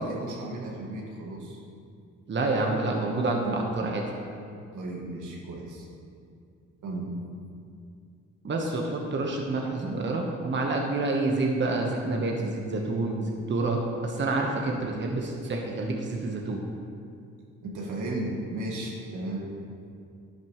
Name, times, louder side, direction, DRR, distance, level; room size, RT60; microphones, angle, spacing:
voice 1, 0.0-1.6 4.7-5.9 6.8-7.1 17.6-19.5, right 1 dB, 80° right, -1 dB, 1.9 m, -35 dB
voice 2, 2.3-4.1 8.4-16.6, right 2 dB, 40° right, 0 dB, 1.2 m, -28 dB
10.5 x 10.5 x 3.1 m, 2.4 s
cardioid pair, 90°, 30 cm